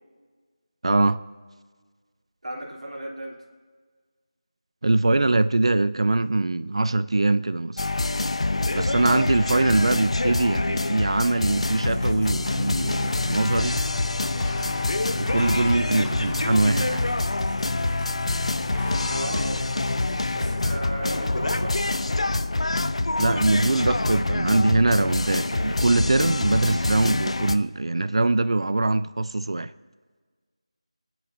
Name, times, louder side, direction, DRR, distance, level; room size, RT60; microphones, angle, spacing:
voice 1, 0.8-1.2 4.8-7.8 8.7-13.8 15.2-17.1 23.2-29.7, right 2 dB, 55° right, 0.5 m, -22 dB
voice 2, 2.4-3.4 19.1-19.7 20.3-21.8, right 1 dB, 75° right, 3.1 m, -35 dB
sound 1, 7.8-27.6, left 2 dB, 65° left, 0.6 m, -26 dB
sound 2, 11.8-20.7, left 6 dB, 5° left, 0.4 m, -36 dB
Bicycle, 18.9-25.4, left 1 dB, 90° left, 3.6 m, -39 dB
28.5 x 10.0 x 2.6 m
figure-of-eight pair, 170°, 4 cm